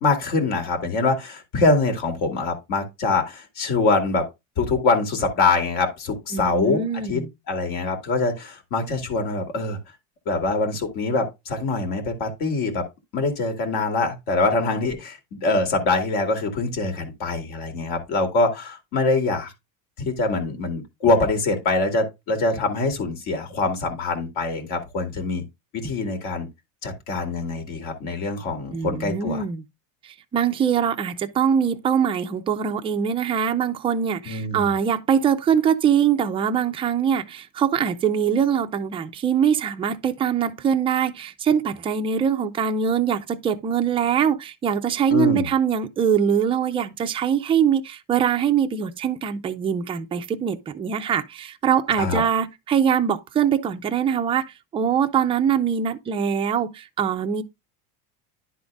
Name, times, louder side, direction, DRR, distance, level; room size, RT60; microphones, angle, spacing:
voice 1, 0.0-4.3 4.6-6.8 7.1-7.2 7.5-9.8 10.3-12.8 13.1-19.5 20.0-25.4 25.7-26.5 26.8-29.4 34.3-34.7 45.1-45.5 52.0-52.2, left 3 dB, 60° left, 2.4 m, -24 dB
voice 2, 6.3-7.3 28.7-29.6 30.0-54.5 54.7-57.4, right 8 dB, 15° right, 0.3 m, -23 dB
10.5 x 3.9 x 3.4 m
cardioid pair, 145°, 43 cm